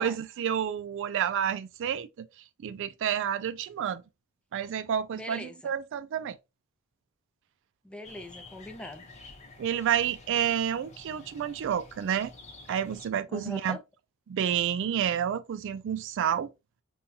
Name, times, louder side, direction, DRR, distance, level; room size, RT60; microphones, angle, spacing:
voice 1, 0.0-2.3 2.6-4.0 4.5-6.4 9.6-12.3 12.7-13.8 14.3-16.5, right 9 dB, 60° right, 0.3 m, -29 dB
voice 2, 5.1-5.7 7.8-9.0 13.3-13.8, left 1 dB, 5° left, 0.5 m, -40 dB
sound 1, 8.0-13.1, left 3 dB, 30° left, 0.8 m, -50 dB
5.4 x 2.3 x 2.7 m
head